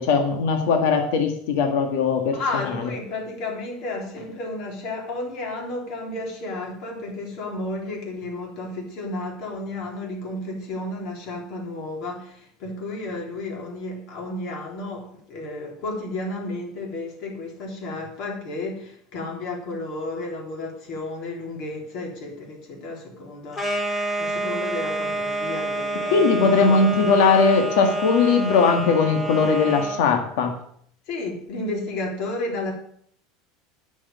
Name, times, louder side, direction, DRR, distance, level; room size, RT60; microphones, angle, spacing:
voice 1, 0.0-2.9 26.1-30.5, left 5 dB, 75° left, 4 dB, 1.8 m, -20 dB
voice 2, 2.3-26.4 26.6-27.2 31.1-32.7, left 2 dB, 55° left, 0 dB, 3.7 m, -32 dB
sound 1, 23.5-30.0, right 2 dB, 30° left, 3.5 m, -28 dB
10.0 x 6.5 x 7.2 m, 0.64 s
supercardioid pair, 145°, 0 cm